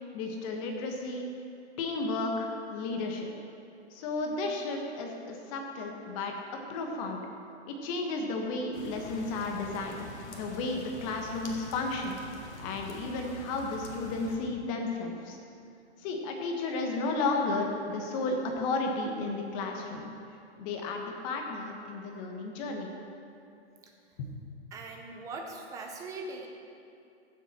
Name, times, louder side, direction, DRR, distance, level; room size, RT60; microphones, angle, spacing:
voice 1, 0.1-1.3 1.8-3.3 3.9-7.2 7.7-10.0 10.3-12.2 12.6-15.4 16.0-20.1 20.6-22.9 24.2-24.3, left 3 dB, 30° left, 2 dB, 1.3 m, -33 dB
sound 1, 8.7-14.4, left 2 dB, 75° left, 2.0 m, -46 dB
voice 2, 24.7-26.5, right 3 dB, 10° right, 2 dB, 0.6 m, -41 dB
16.0 x 7.6 x 4.3 m, 2.6 s
hypercardioid pair, 155°, 35 cm